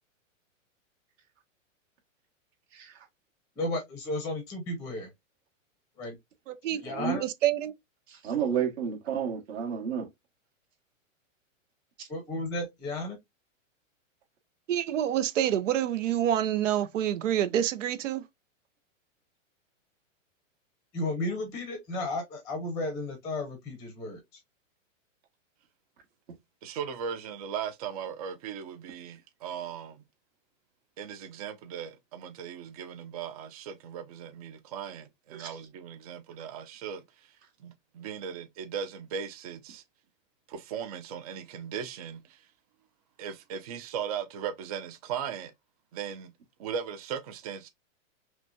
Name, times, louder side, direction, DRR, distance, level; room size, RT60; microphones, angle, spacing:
voice 1, 2.7-3.1 6.8-7.2 8.1-10.1 12.0-12.1 35.3-35.6, right 8 dB, 55° right, 1.8 m, -31 dB
voice 2, 3.6-5.1 6.0-6.1 6.8-7.2 12.1-13.2 20.9-24.2, left 2 dB, 10° left, 0.7 m, -33 dB
voice 3, 6.5-6.8 7.2-7.7 14.7-18.2, right 11 dB, 70° right, 0.7 m, -27 dB
voice 4, 26.6-30.0 31.0-37.0 37.6-39.8 40.5-42.4 43.2-45.5 45.9-46.3 46.6-47.7, right 7 dB, 30° right, 0.5 m, -38 dB
5.9 x 2.3 x 2.6 m
supercardioid pair, 165°, 39 cm